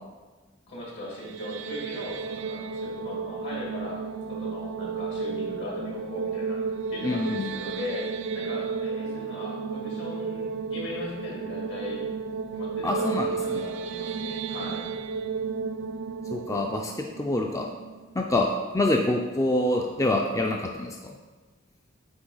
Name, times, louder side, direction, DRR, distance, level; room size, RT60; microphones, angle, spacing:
voice 1, 0.7-6.6 6.9-12.0 12.5-14.8, left 1 dB, 70° left, -4 dB, 2.1 m, -39 dB
sound 1, 1.1-18.2, right 5 dB, 85° right, 0.4 m, -33 dB
voice 2, 7.0-7.5 12.8-13.6 16.3-17.7 18.2-18.5 18.7-21.0, left 2 dB, 15° left, 1 dB, 0.4 m, -26 dB
8.7 x 4.4 x 3.9 m, 1.3 s
head